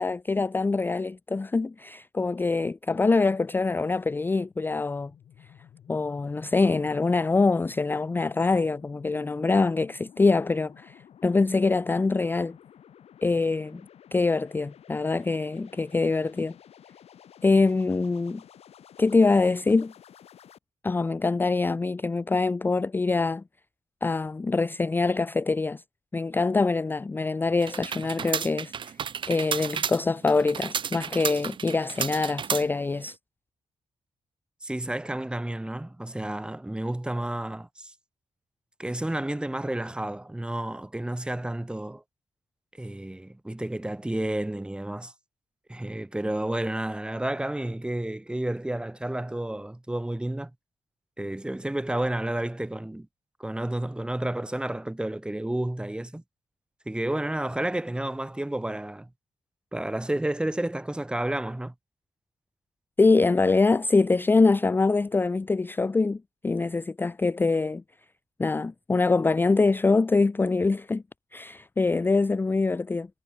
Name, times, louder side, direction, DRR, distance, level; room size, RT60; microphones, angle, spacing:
voice 1, 0.0-5.1 5.9-12.6 13.2-13.8 14.1-16.5 17.4-18.4 19.0-19.9 20.8-23.4 24.0-25.8 26.1-28.9 29.3-33.2 63.0-67.8 68.4-71.0 71.3-73.1, left 3 dB, 20° left, 0.5 m, -24 dB
sound 1, 4.1-20.6, left 9 dB, 90° left, 4.1 m, -53 dB
sound 2, 27.6-33.1, right 7 dB, 50° right, 0.8 m, -32 dB
voice 2, 34.6-37.9 38.8-42.0 42.8-45.1 45.7-50.5 51.2-53.1 53.4-56.2 56.9-59.1 59.7-61.7, right 1 dB, 10° right, 1.9 m, -31 dB
wide cardioid pair, 120°, 10 cm